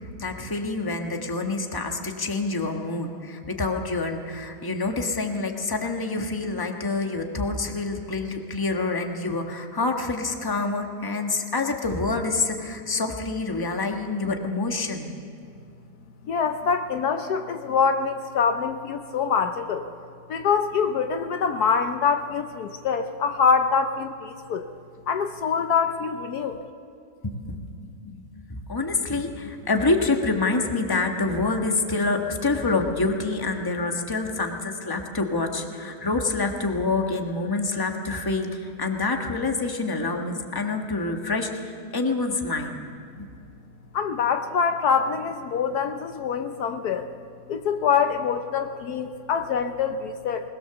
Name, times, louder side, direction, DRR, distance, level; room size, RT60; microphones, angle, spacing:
voice 1, 0.2-15.1 27.2-28.2 28.5-42.8 43.1-43.3, left 3 dB, 15° left, 3 dB, 1.3 m, -27 dB
voice 2, 16.3-19.9 20.3-24.7 25.1-26.6 43.9-47.1 47.5-50.5, left 6 dB, 70° left, 7 dB, 1.2 m, -25 dB
20.5 x 20.0 x 6.9 m, 2.5 s
omnidirectional pair, 1.8 m